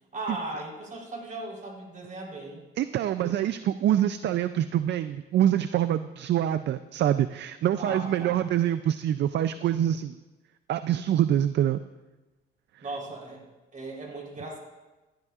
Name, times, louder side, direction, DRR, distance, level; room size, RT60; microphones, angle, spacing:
voice 1, 0.1-2.7 3.2-3.3 7.8-8.4 12.8-14.6, right 2 dB, 40° right, -1 dB, 3.8 m, -37 dB
voice 2, 2.8-10.2 10.7-11.8, right 11 dB, 60° right, 12 dB, 0.4 m, -25 dB
17.0 x 12.5 x 2.5 m, 1.1 s
cardioid pair, 90°, 20 cm